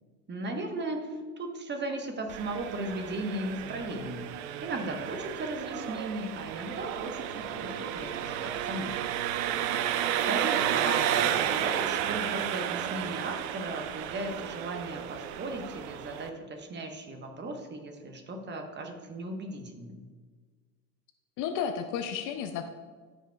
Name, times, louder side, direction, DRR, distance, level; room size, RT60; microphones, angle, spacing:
voice 1, 0.3-9.0 10.2-20.1, right 2 dB, 20° right, 4 dB, 1.1 m, -36 dB
Engine, 2.3-16.3, right 10 dB, 55° right, 0.7 m, -32 dB
voice 2, 21.4-22.7, left 7 dB, 40° left, 8 dB, 0.6 m, -32 dB
13.5 x 5.4 x 2.3 m, 1.5 s
hypercardioid pair, 90°, 47 cm